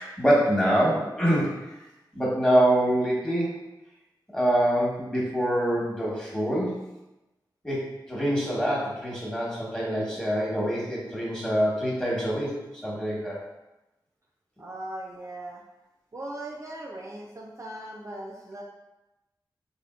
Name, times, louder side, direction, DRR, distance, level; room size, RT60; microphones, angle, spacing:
voice 1, 0.0-1.5 2.1-3.5 4.3-6.8 7.6-12.6 12.8-13.4, equal, 10° left, -5 dB, 1.2 m, -25 dB
voice 2, 14.6-15.6 16.1-18.6, right 1 dB, 40° right, -2 dB, 0.5 m, -39 dB
5.0 x 2.5 x 2.4 m, 0.98 s
wide cardioid pair, 80°, 8 cm